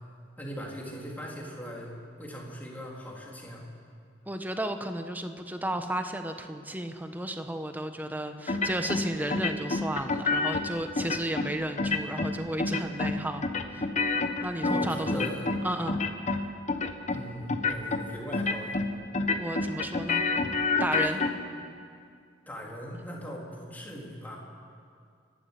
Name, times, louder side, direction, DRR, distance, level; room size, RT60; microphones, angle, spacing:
voice 1, 0.4-3.6 14.6-15.5 17.1-18.8 20.9-21.3 22.5-24.4, equal, 10° left, -3 dB, 3.6 m, -39 dB
voice 2, 4.3-13.4 13.7-13.8 14.4-15.3 15.6-16.0 19.4-20.2 20.8-21.2, right 1 dB, 10° right, 7 dB, 1.2 m, -33 dB
sound 1, 8.5-9.0 9.3-10.6 11.0-11.5 11.8-12.3 12.6-13.1 13.4-15.6 15.9-16.4 16.7-17.2 17.5-18.0 18.3-18.9 19.1-21.3, left 3 dB, 40° left, 1.3 m, -27 dB
30.0 x 12.0 x 8.3 m, 2.3 s
head